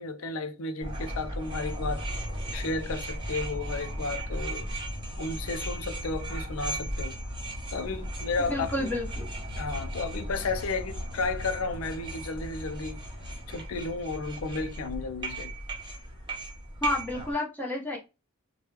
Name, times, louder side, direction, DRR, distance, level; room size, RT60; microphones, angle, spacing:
voice 1, 0.0-2.1 2.5-4.7 5.2-7.2 7.7-8.9 9.6-13.0 13.5-15.5, left 3 dB, 85° left, 0.5 m, -33 dB
sound 1, 0.8-17.3, right 1 dB, 25° right, 0.9 m, -36 dB
voice 2, 8.5-9.3 16.8-18.0, left 2 dB, 10° left, 1.0 m, -30 dB
2.9 x 2.3 x 3.2 m
head